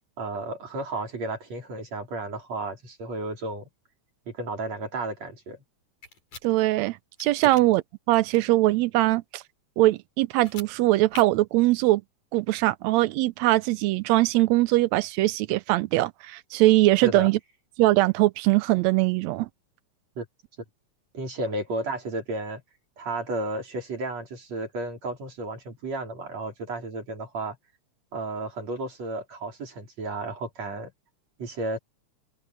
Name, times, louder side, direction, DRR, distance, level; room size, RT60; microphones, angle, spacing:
voice 1, 0.2-3.7 4.3-5.6 17.0-17.3 20.2-20.3 21.1-22.6 23.0-27.6 28.1-30.9 31.4-31.8, right 2 dB, 60° right, 5.4 m, -33 dB
sound 1, 6.0-6.5 7.2-7.6 10.3-10.7 11.1-11.2, left 3 dB, 75° left, 9.5 m, -41 dB
voice 2, 6.4-9.4 9.8-12.0 12.3-17.4 17.8-19.5, right 18 dB, 75° right, 1.7 m, -21 dB
open air
omnidirectional pair, 3.4 m